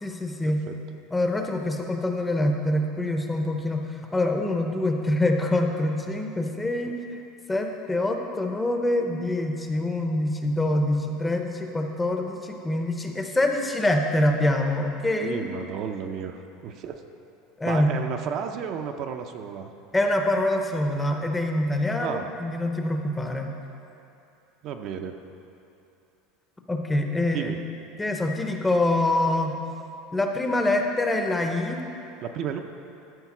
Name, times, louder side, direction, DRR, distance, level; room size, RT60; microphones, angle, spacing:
voice 1, 0.0-0.6 1.1-7.0 7.5-15.4 17.6-17.9 19.9-23.5 26.7-27.5 28.0-29.6 30.1-31.8, left 1 dB, 10° left, 3 dB, 0.6 m, -25 dB
voice 2, 15.2-17.0 17.6-19.7 22.0-22.3 24.6-25.2 27.3-27.6 32.2-32.6, right 7 dB, 40° right, 5 dB, 0.5 m, -32 dB
12.5 x 4.6 x 5.9 m, 2.9 s
supercardioid pair, 160°, 0 cm